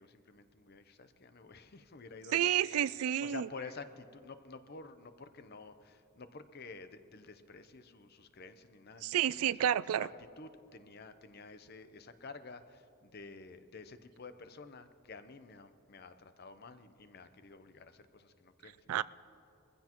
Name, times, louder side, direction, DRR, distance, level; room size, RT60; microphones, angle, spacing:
voice 1, 0.0-9.2 9.6-10.1 10.4-19.0, left 4 dB, 45° left, 10 dB, 0.7 m, -50 dB
voice 2, 2.3-3.5 9.0-10.1 18.9-19.0, right 10 dB, 85° right, 18 dB, 0.3 m, -30 dB
22.5 x 15.5 x 3.0 m, 2.7 s
head